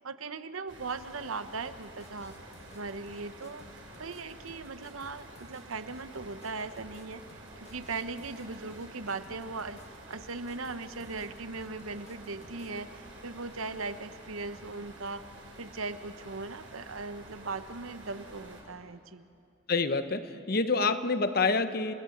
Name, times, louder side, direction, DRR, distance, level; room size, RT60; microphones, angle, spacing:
voice 1, 0.0-2.3 2.7-3.6 4.0-9.8 10.1-15.3 15.6-19.2, right 3 dB, 90° right, 11 dB, 0.9 m, -39 dB
sound 1, 0.7-18.6, right 1 dB, 70° right, 7.5 m, -49 dB
sound 2, 1.6-12.8, left 2 dB, 30° left, 1.5 m, -56 dB
voice 2, 19.7-21.9, left 4 dB, 45° left, 10 dB, 1.0 m, -27 dB
29.5 x 17.0 x 8.0 m, 2.5 s
head